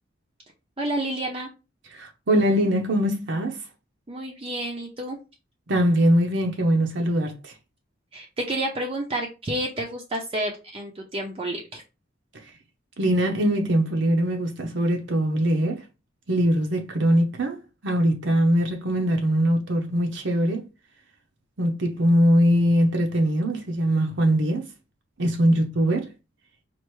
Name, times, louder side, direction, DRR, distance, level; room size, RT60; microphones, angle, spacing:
voice 1, 0.8-1.5 4.1-5.2 8.1-11.8 25.5-25.6, right 1 dB, 30° right, 0.6 m, -30 dB
voice 2, 1.9-3.6 5.7-7.5 12.4-12.5 13.0-15.8 16.3-17.6 17.8-20.7 21.6-24.7 25.2-26.1, equal, 70° right, 0.7 m, -22 dB
4.5 x 2.5 x 3.1 m
head